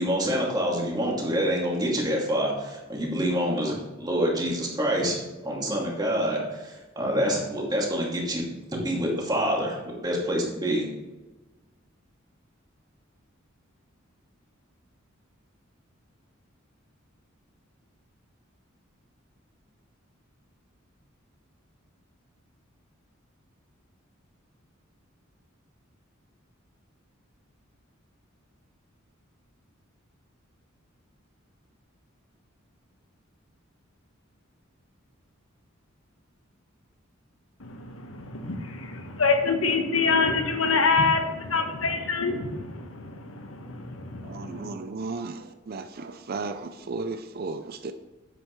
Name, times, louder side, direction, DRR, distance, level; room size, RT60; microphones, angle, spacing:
voice 1, 0.0-10.9, equal, 20° right, 2.4 m, -27 dB
voice 2, 37.6-44.7, left 4 dB, 85° left, 1.2 m, -26 dB
voice 3, 44.3-47.9, right 3 dB, 50° right, 0.5 m, -35 dB
9.9 x 7.8 x 3.2 m
head